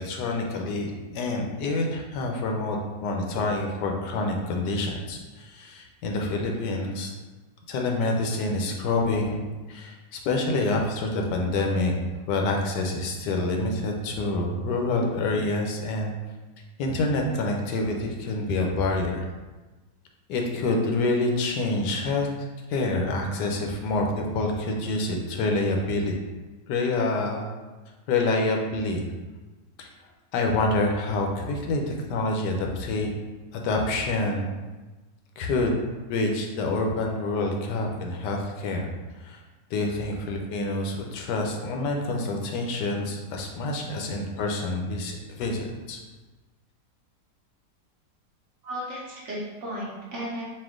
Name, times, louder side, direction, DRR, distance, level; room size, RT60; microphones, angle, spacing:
voice 1, 0.0-7.1 7.7-11.9 12.3-16.1 16.8-19.3 20.3-22.3 22.7-26.1 26.7-27.5 28.1-29.1 29.8-29.9 30.3-33.1 33.5-34.5 35.4-35.7 36.1-38.9 39.2-39.4 39.7-46.0, left 2 dB, 85° left, 2 dB, 1.3 m, -27 dB
voice 2, 48.6-50.4, equal, 55° right, -5 dB, 1.0 m, -34 dB
4.3 x 2.5 x 3.6 m, 1.2 s
omnidirectional pair, 1.8 m